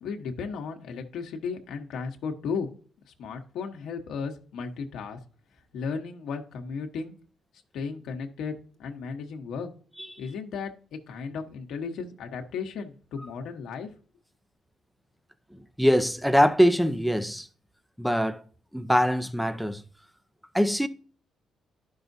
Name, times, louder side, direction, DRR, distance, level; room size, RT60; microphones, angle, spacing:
voice 1, 0.0-2.7 3.0-5.2 5.7-7.2 7.7-8.5 8.8-9.7 10.2-13.9, left 5 dB, 80° left, 1.1 m, -35 dB
voice 2, 15.5-17.5 18.0-18.4 18.7-19.8 20.5-20.9, equal, ahead, 0.6 m, -23 dB
11.5 x 5.6 x 2.7 m
cardioid pair, 90°, 0 cm